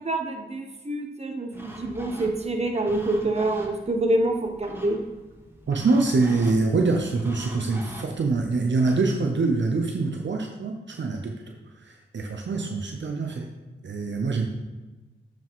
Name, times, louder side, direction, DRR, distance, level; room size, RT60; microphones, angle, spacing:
voice 1, 0.0-5.0, right 2 dB, 30° right, 3 dB, 1.2 m, -26 dB
sound 1, 1.5-9.0, right 1 dB, 10° right, 1.6 m, -43 dB
voice 2, 5.7-11.5 11.8-13.5 13.8-14.5, right 3 dB, 65° right, 3 dB, 0.8 m, -25 dB
8.2 x 5.1 x 3.7 m, 1.1 s
cardioid pair, 45°, 20 cm